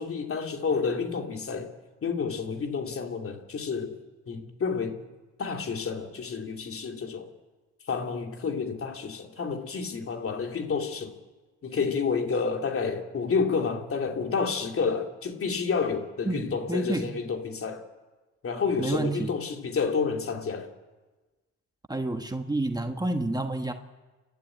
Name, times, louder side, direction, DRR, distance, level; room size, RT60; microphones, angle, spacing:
voice 1, 0.0-1.7 2.0-4.0 4.3-5.0 5.4-7.3 7.9-11.1 11.6-17.8 18.4-20.7, left 5 dB, 45° left, 2.8 m, -29 dB
voice 2, 16.2-17.2 18.8-19.3 21.9-23.7, right 2 dB, 15° right, 1.3 m, -29 dB
30.0 x 12.0 x 8.8 m
cardioid pair, 90°, 30 cm